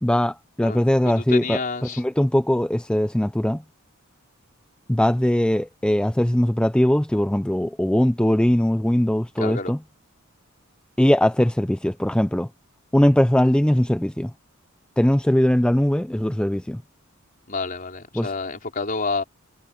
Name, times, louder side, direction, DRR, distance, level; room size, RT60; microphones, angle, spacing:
voice 1, 0.0-3.6 4.9-9.8 11.0-12.5 12.9-14.3 15.0-16.8 18.1-18.3, left 1 dB, 5° left, 0.4 m, -20 dB
voice 2, 1.2-2.0 9.4-9.7 17.5-19.2, left 4 dB, 40° left, 4.6 m, -29 dB
head